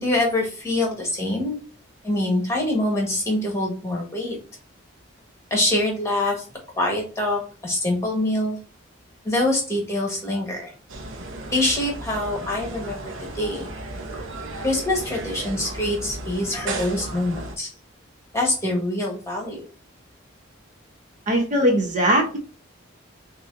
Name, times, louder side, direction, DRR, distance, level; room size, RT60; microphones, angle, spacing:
voice 1, 0.0-1.6 2.0-4.4 5.5-6.4 6.8-8.6 9.2-10.7 11.5-13.7 14.6-17.7 18.3-19.6, left 1 dB, 15° left, -1 dB, 1.5 m, -24 dB
sound 1, 10.9-17.6, right 2 dB, 70° right, 0.8 m, -34 dB
voice 2, 21.3-22.4, equal, 35° right, 1 dB, 0.9 m, -20 dB
6.1 x 2.7 x 2.6 m, 0.37 s
head